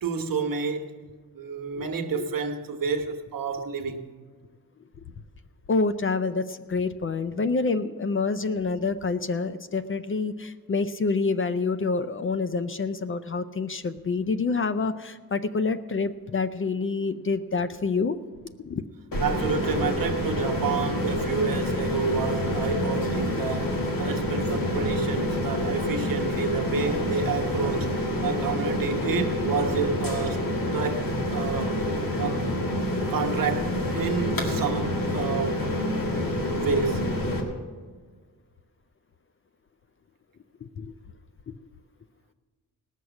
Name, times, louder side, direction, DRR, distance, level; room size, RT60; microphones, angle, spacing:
voice 1, 0.0-0.9 1.3-4.0 19.2-31.8 32.2-32.4 33.1-35.7 36.6-37.1, right 5 dB, 65° right, 1.2 m, -29 dB
voice 2, 5.7-18.2 18.7-18.8 40.6-40.9, left 4 dB, 35° left, 0.4 m, -27 dB
sound 1, 19.1-37.4, left 1 dB, 65° left, 2.0 m, -27 dB
18.5 x 6.4 x 7.0 m
wide cardioid pair, 160°, 36 cm